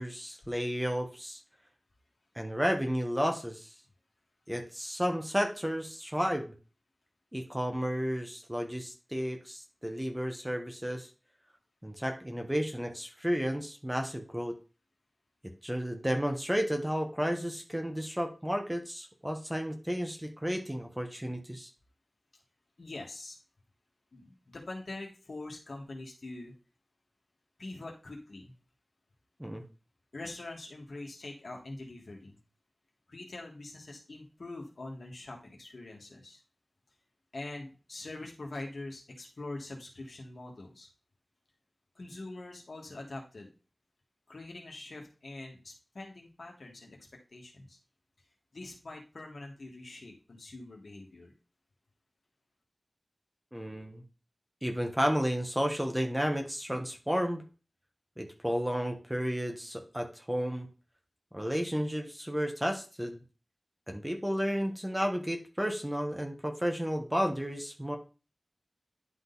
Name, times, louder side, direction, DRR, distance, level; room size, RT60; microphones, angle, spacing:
voice 1, 0.0-1.4 2.3-3.7 4.5-6.5 7.3-11.1 11.8-14.5 15.6-21.7 29.4-29.6 53.5-54.0 54.6-57.4 58.2-60.7 61.3-63.2 63.9-68.0, equal, 10° right, 3 dB, 1.3 m, -32 dB
voice 2, 22.8-23.4 24.1-26.5 27.6-28.5 30.1-32.4 33.1-36.4 37.3-40.9 42.0-43.5 44.3-47.0 47.3-47.8 48.5-51.3, left 2 dB, 80° left, 0 dB, 1.8 m, -44 dB
10.5 x 3.8 x 4.0 m, 0.34 s
wide cardioid pair, 60°, 0 cm